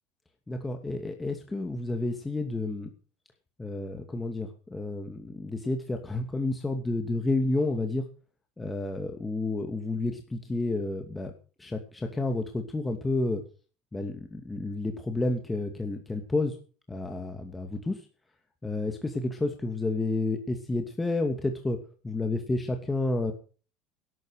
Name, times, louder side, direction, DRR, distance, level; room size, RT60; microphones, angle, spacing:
voice 1, 0.5-2.9 3.6-8.1 8.6-11.3 11.6-13.4 13.9-16.5 16.9-18.1 18.6-21.8 22.0-23.3, left 2 dB, 15° left, 4 dB, 2.5 m, -30 dB
12.0 x 12.0 x 5.0 m, 0.37 s
hypercardioid pair, 75°, 0 cm